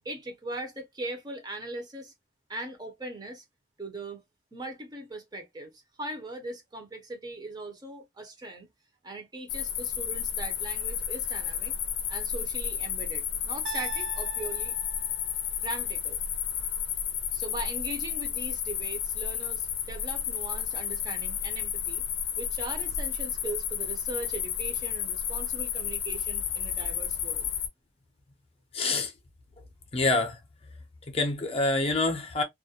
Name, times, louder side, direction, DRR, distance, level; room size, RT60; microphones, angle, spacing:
voice 1, 0.0-2.1 2.5-3.4 3.8-4.2 4.5-8.7 9.0-11.7 12.1-14.7 15.6-16.2 17.3-22.0 22.4-27.5, right 2 dB, 20° right, 0.5 m, -40 dB
sound 1, 9.5-27.7, left 8 dB, 90° left, 0.4 m, -32 dB
sound 2, 13.7-15.8, right 7 dB, 80° right, 0.4 m, -42 dB
voice 2, 28.7-29.1 29.9-30.4 31.1-32.4, left 2 dB, 30° left, 0.5 m, -26 dB
2.3 x 2.1 x 2.7 m
head